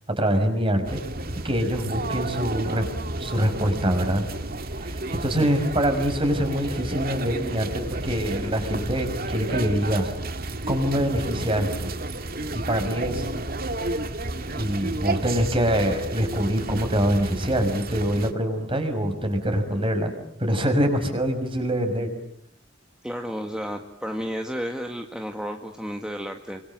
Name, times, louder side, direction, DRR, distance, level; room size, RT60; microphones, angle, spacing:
voice 1, 0.2-1.0 1.4-2.8 3.2-4.2 4.8-10.1 10.7-11.9 12.5-13.2 14.5-20.1 20.4-22.1, equal, 25° right, 6 dB, 5.8 m, -24 dB
sound 1, 0.9-18.3, right 2 dB, 50° right, 2.2 m, -31 dB
voice 2, 23.0-26.6, equal, 5° right, 3 dB, 2.0 m, -32 dB
29.5 x 26.0 x 7.7 m, 0.73 s
head